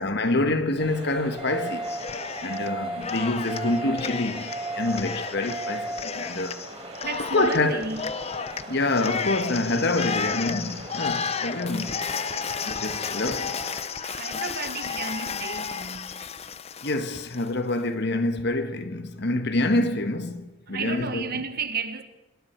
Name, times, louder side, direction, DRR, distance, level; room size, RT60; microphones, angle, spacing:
voice 1, 0.0-1.9 2.4-6.6 7.2-7.9 8.7-12.0 12.6-13.6 16.8-21.3, left 2 dB, 55° left, 1.4 m, -26 dB
sound 1, 0.8-13.9, right 2 dB, 30° right, 4.0 m, -41 dB
sound 2, 1.4-1.9 2.4-2.9 3.4-3.9 4.4-4.9 5.4-5.9, right 3 dB, 5° left, 5.0 m, -34 dB
Cheering, 1.8-2.7 3.0-17.5, left 6 dB, 30° left, 0.6 m, -33 dB
voice 2, 7.0-8.0 14.0-16.3 20.7-22.0, right 4 dB, 45° right, 1.4 m, -33 dB
25.5 x 22.5 x 4.6 m
head